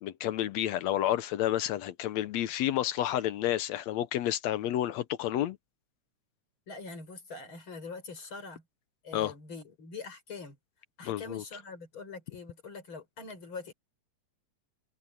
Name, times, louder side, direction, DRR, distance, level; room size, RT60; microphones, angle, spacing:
voice 1, 0.0-5.6 9.1-9.3 11.0-11.4, left 12 dB, 70° left, 1.8 m, -30 dB
voice 2, 6.7-8.6 9.0-10.6 11.0-13.7, left 4 dB, 40° left, 5.3 m, -43 dB
omnidirectional pair, 3.6 m